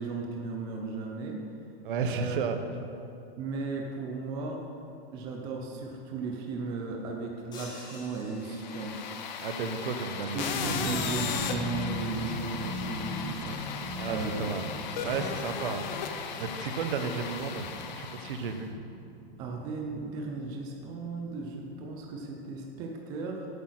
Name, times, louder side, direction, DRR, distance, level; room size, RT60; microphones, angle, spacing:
voice 1, 0.0-1.4 2.1-2.7 3.4-4.6 5.1-9.1 10.3-13.6 14.1-14.5 19.4-23.5, right 3 dB, 15° right, 1 dB, 0.5 m, -36 dB
voice 2, 1.8-2.6 9.4-11.3 14.0-14.7 15.0-15.8 16.4-18.8, right 5 dB, 60° right, 8 dB, 0.9 m, -33 dB
sound 1, 7.5-9.3, left 2 dB, 15° left, 1.3 m, -48 dB
sound 2, 8.4-18.6, left 7 dB, 50° left, 0.8 m, -37 dB
sound 3, 10.4-21.1 21.4-21.7 22.1-22.3, left 2 dB, 30° right, 2.5 m, -40 dB
8.3 x 8.2 x 6.4 m, 2.6 s
supercardioid pair, 170°, 30 cm